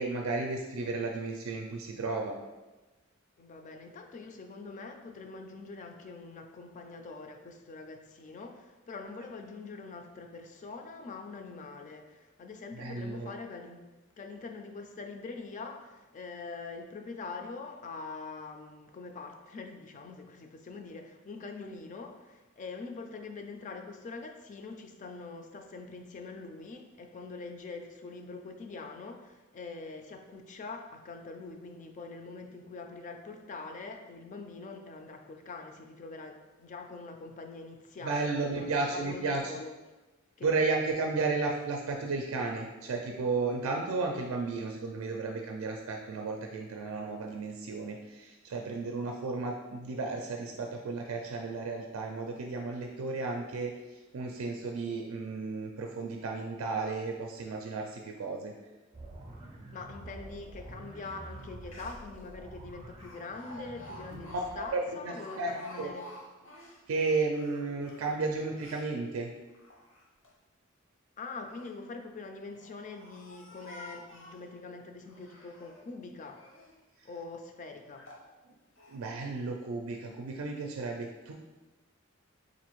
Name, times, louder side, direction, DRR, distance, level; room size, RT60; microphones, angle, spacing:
voice 1, 0.0-2.4 12.7-13.3 38.0-39.4 40.4-53.7 54.1-58.5 64.1-64.3 64.5-65.9 66.9-69.3 78.9-81.3, right 3 dB, 90° right, 2 dB, 0.4 m, -33 dB
voice 2, 3.4-13.9 14.2-39.7 40.4-40.6 59.7-66.1 71.2-76.4 77.0-78.1, left 3 dB, 35° left, 5 dB, 0.3 m, -44 dB
sound 1, 58.9-64.7, right 1 dB, 25° right, 0.4 m, -48 dB
Speech, 61.4-61.5 61.7-62.2 63.0-66.8 67.3-68.9 69.5-70.3 71.2-71.8 72.5-74.5 75.0-75.9 76.2-76.8 77.3-77.4 78.0-78.3 78.8-79.0, left 1 dB, 65° left, 0.7 m, -51 dB
4.0 x 2.5 x 3.0 m, 1.1 s
head